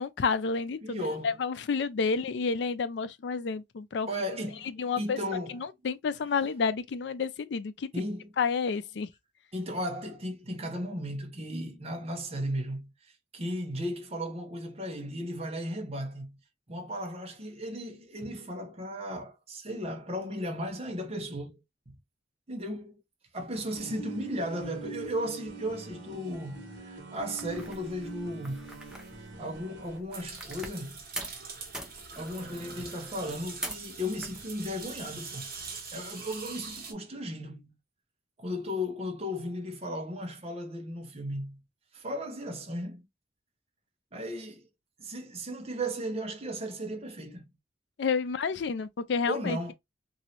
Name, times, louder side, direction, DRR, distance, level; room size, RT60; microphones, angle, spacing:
voice 1, 0.0-4.1 4.8-5.2 5.5-7.9 8.4-9.1 48.0-49.7, left 5 dB, 70° left, 0.4 m, -30 dB
voice 2, 0.8-1.4 4.1-5.6 7.9-8.3 9.5-16.4 16.7-21.6 21.9-22.0 22.5-22.9 23.3-28.7 29.4-31.0 32.2-35.5 35.9-37.7 38.4-41.6 41.9-43.0 44.1-44.7 45.0-47.5 49.3-49.7, equal, 35° right, 0.8 m, -35 dB
sound 1, 23.5-30.0, right 5 dB, 80° right, 1.0 m, -44 dB
sound 2, 27.4-30.9 31.2-31.4 31.7-33.9 34.2-34.8, right 1 dB, 5° right, 0.6 m, -43 dB
sound 3, 30.1-36.9, right 4 dB, 55° right, 1.2 m, -43 dB
3.0 x 2.7 x 2.8 m
head